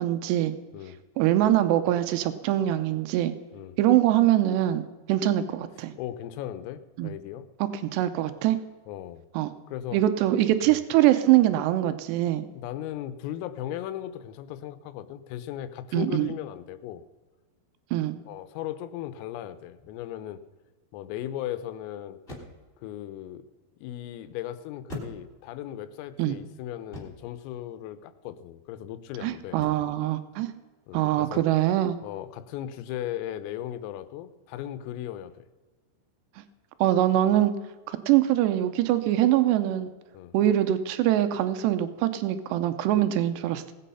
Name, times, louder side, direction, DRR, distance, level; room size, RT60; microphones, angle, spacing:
voice 1, 0.0-0.5 1.2-3.3 3.8-4.8 5.1-5.9 7.0-7.1 7.6-8.6 9.3-9.5 9.9-12.5 15.9-16.3 17.9-18.2 26.2-26.4 29.2-30.5 30.9-32.0 36.8-37.5 37.9-39.9 40.3-43.6, right 13 dB, 85° right, 10 dB, 2.4 m, -23 dB
voice 2, 6.0-7.5 8.9-9.3 9.7-10.0 10.7-10.8 12.6-17.0 18.3-20.4 20.9-22.2 22.8-23.4 23.8-29.6 30.9-31.4 32.0-35.5 40.1-40.4, left 12 dB, 90° left, 13 dB, 3.5 m, -37 dB
sound 1, 19.8-20.1 22.2-22.8 24.9-25.6 26.9-27.4 29.6-30.0, left 1 dB, 15° left, 2.3 m, -42 dB
19.0 x 8.4 x 5.6 m, 1.3 s
omnidirectional pair, 5.8 m